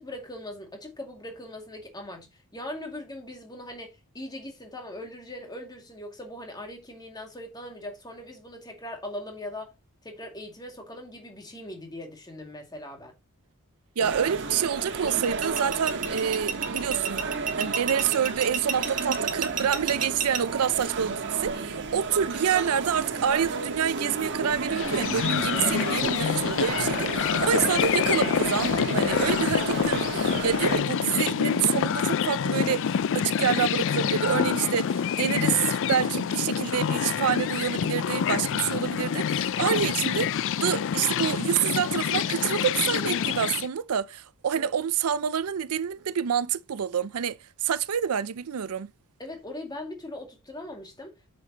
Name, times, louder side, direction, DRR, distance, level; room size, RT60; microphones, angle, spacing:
voice 1, 0.0-9.7 10.0-13.1 25.6-25.7 27.0-27.1 44.5-44.7 49.2-51.3, left 1 dB, 20° left, 2.3 m, -40 dB
sound 1, 14.0-30.8, right 4 dB, 55° right, 1.5 m, -32 dB
voice 2, 14.0-17.2 17.6-48.9, right 8 dB, 85° right, 0.5 m, -27 dB
sound 2, 15.1-20.4, right 7 dB, 40° right, 1.2 m, -30 dB
sound 3, 24.7-43.7, left 8 dB, 60° left, 0.4 m, -27 dB
8.4 x 6.9 x 2.9 m
head